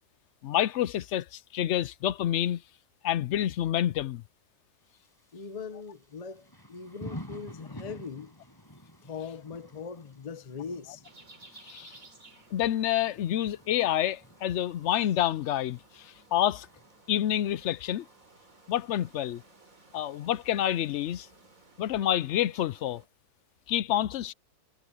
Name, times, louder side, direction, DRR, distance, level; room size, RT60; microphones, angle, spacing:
voice 1, 0.4-2.6 3.0-4.2 11.6-12.0 12.5-16.7 17.1-18.1 18.7-19.4 19.9-21.3 21.8-23.0 23.7-24.3, left 11 dB, 70° left, 0.6 m, -28 dB
Thunder / Rain, 4.8-21.7, equal, 15° left, 5.5 m, -51 dB
voice 2, 5.3-8.3 9.0-11.0, left 5 dB, 30° left, 0.8 m, -40 dB
sound 1, 11.0-23.1, right 3 dB, 55° right, 3.7 m, -57 dB
omnidirectional pair, 1.7 m